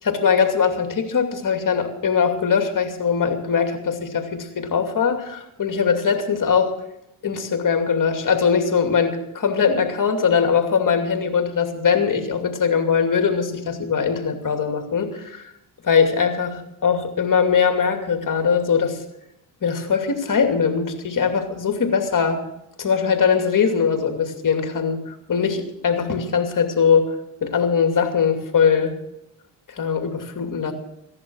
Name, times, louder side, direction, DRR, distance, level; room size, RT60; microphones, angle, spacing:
voice 1, 0.0-6.7 7.2-15.5 15.8-19.0 19.6-22.4 22.8-27.1 27.4-28.9 29.8-30.7, left 6 dB, 45° left, 5 dB, 2.6 m, -21 dB
15.5 x 11.0 x 6.3 m, 0.84 s
supercardioid pair, 65°, 44 cm